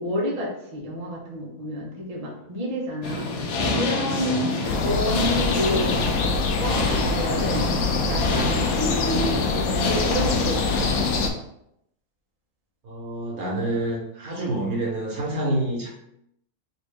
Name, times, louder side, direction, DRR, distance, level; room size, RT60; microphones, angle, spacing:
voice 1, 0.0-3.3 3.7-4.5 4.8-7.7 8.1-11.2, equal, 35° right, -2 dB, 0.7 m, -29 dB
sound 1, 3.0-11.3, left 2 dB, 65° left, 0.8 m, -27 dB
voice 2, 4.5-5.1 12.8-15.9, right 1 dB, 80° right, -3 dB, 1.6 m, -28 dB
sound 2, 4.6-11.3, left 4 dB, 80° left, 1.0 m, -25 dB
3.3 x 2.6 x 3.3 m, 0.77 s
omnidirectional pair, 1.5 m